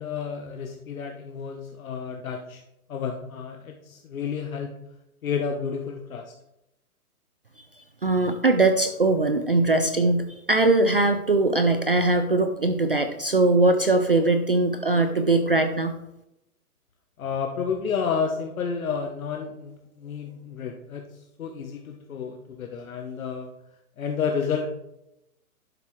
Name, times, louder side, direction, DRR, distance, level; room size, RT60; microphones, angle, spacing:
voice 1, 0.0-2.6 2.9-4.8 5.2-6.3 17.2-23.5 24.0-24.7, left 6 dB, 65° left, 3 dB, 1.1 m, -31 dB
voice 2, 8.0-15.9, right 2 dB, 40° right, 8 dB, 0.4 m, -21 dB
11.5 x 7.1 x 3.2 m, 0.87 s
hypercardioid pair, 170°, 45 cm